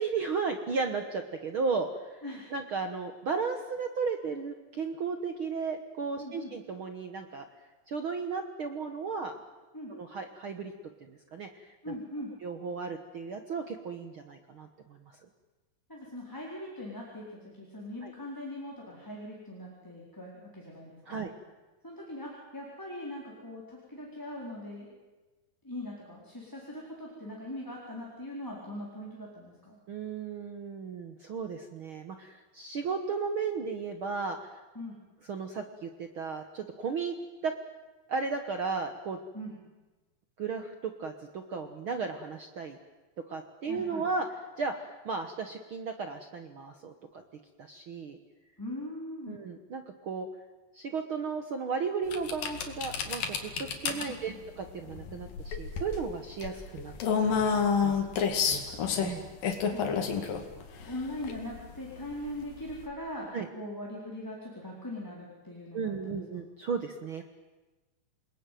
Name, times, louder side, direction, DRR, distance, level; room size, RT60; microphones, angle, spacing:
voice 1, 0.0-2.2 2.5-7.4 7.9-9.3 9.9-10.7 11.1-11.9 12.4-15.0 18.0-18.1 21.1-21.3 29.9-34.6 35.3-37.1 37.4-37.5 38.1-39.2 40.4-42.8 43.3-44.3 44.6-47.2 47.6-48.2 49.3-50.3 50.7-56.9 57.2-58.1 58.5-59.2 63.3-63.5 65.7-67.2, right 5 dB, 55° right, 6 dB, 1.5 m, -35 dB
voice 2, 2.2-2.5 6.2-6.5 9.7-9.9 11.8-12.3 15.9-17.3 17.6-21.3 21.8-25.0 25.6-29.8 34.7-35.0 39.3-39.6 43.7-44.1 48.6-49.4 53.9-54.4 59.7-60.0 60.8-66.4, left 1 dB, 5° left, -4 dB, 3.9 m, -41 dB
sound 1, 52.1-62.9, left 6 dB, 85° left, 3.8 m, -30 dB
28.5 x 20.0 x 9.3 m, 1.2 s
omnidirectional pair, 3.9 m